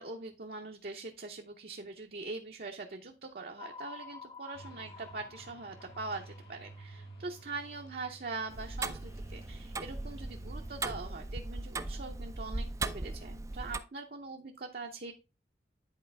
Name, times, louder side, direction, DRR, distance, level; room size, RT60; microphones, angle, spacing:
voice 1, 0.0-15.1, right 3 dB, 55° right, 2 dB, 0.7 m, -42 dB
sound 1, 3.6-7.8, left 5 dB, 30° left, 0.7 m, -51 dB
sound 2, 4.5-11.0, right 2 dB, 65° left, 1.8 m, -52 dB
Tick-tock, 8.5-13.8, right 3 dB, 15° right, 0.3 m, -38 dB
10.5 x 4.4 x 3.3 m, 0.29 s
head